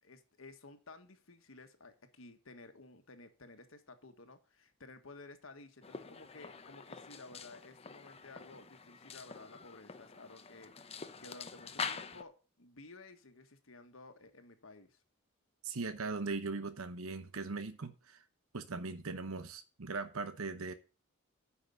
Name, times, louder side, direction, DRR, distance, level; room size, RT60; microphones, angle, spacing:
voice 1, 0.0-15.0, left 3 dB, 75° left, 1.6 m, -54 dB
sound 1, 5.8-12.2, left 5 dB, 30° left, 0.8 m, -45 dB
voice 2, 15.6-18.2 18.5-20.7, right 4 dB, 85° right, 0.9 m, -39 dB
9.6 x 5.8 x 6.8 m
head